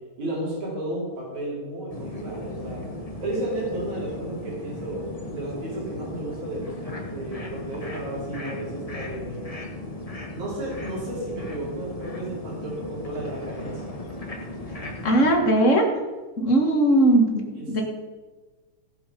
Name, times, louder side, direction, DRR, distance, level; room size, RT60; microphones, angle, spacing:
voice 1, 0.2-2.8 3.2-9.4 10.3-14.0 17.5-17.8, right 1 dB, 55° right, -6 dB, 6.2 m, -33 dB
sound 1, 1.9-15.4, left 1 dB, 55° left, 0.4 m, -36 dB
voice 2, 15.0-15.9 16.4-17.8, right 1 dB, 35° left, 1 dB, 1.3 m, -19 dB
17.5 x 7.9 x 5.3 m, 1.3 s
omnidirectional pair, 3.9 m